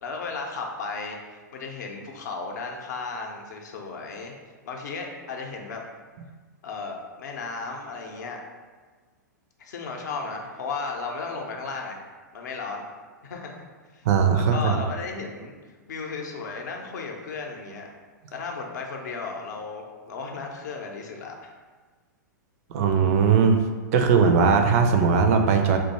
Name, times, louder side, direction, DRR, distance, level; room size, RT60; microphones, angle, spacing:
voice 1, 0.0-4.3 4.7-5.8 6.6-8.4 9.6-12.0 12.3-12.8 13.2-13.6 13.9-14.0 14.3-15.5 15.9-17.9 18.3-21.5, left 4 dB, 60° left, 1 dB, 0.6 m, -34 dB
voice 2, 14.0-14.8 22.7-23.6 23.9-25.8, right 5 dB, 50° right, 5 dB, 0.4 m, -19 dB
2.6 x 2.2 x 4.1 m, 1.4 s
figure-of-eight pair, 105°, 10 cm